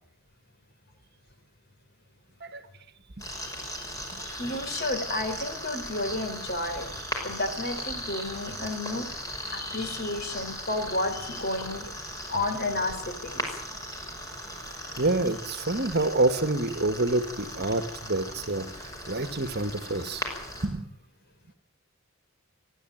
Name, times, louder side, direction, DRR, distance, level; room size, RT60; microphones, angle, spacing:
Earthenware vessel placed in a spring, 3.2-20.7, equal, 15° left, 5.9 m, -38 dB
voice 1, 3.4-3.9 4.2-6.9 7.2-9.1 9.5-11.9 12.3-13.6, left 2 dB, 45° left, 8 dB, 3.9 m, -32 dB
voice 2, 15.0-18.7 19.1-20.3 20.6-20.9, right 2 dB, 50° right, 11 dB, 1.6 m, -27 dB
30.0 x 12.0 x 9.1 m, 0.68 s
head